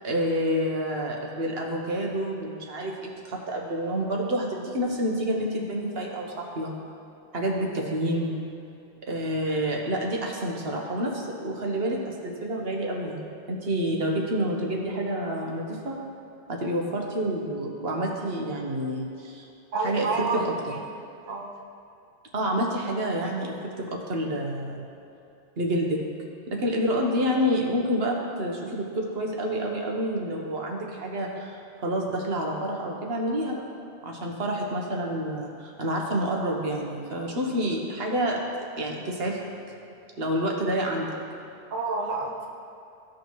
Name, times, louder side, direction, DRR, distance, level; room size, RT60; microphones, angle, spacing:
voice 1, 0.0-6.7 7.3-8.4 9.1-13.2 13.5-16.0 16.5-19.5 19.8-20.1 20.3-20.5 22.3-24.8 25.6-26.0 26.5-33.6 34.0-39.4 40.2-41.1, equal, 70° right, -1 dB, 1.3 m, -28 dB
voice 2, 19.7-20.4 20.7-20.8 21.3-21.5 41.7-42.5, right 3 dB, 45° right, -2 dB, 0.9 m, -29 dB
15.0 x 5.1 x 3.1 m, 2.7 s
omnidirectional pair, 1.0 m